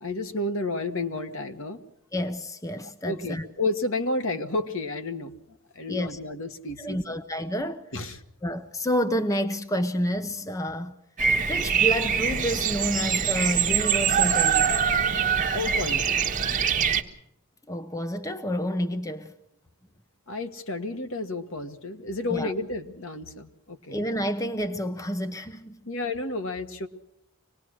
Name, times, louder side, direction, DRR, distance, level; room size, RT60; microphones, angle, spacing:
voice 1, 0.0-1.8 2.8-5.4 5.7-7.2 7.9-8.2 15.5-16.2 20.3-24.0 25.9-26.9, left 2 dB, 60° left, 1.6 m, -31 dB
voice 2, 2.1-3.4 5.9-6.2 6.8-7.9 8.4-10.9 11.4-14.8 17.7-19.3 22.3-22.5 23.9-25.8, equal, 15° left, 0.8 m, -29 dB
Bird vocalization bird call bird song, 11.2-17.0, right 7 dB, 35° right, 1.4 m, -24 dB
25.0 x 19.5 x 6.4 m
head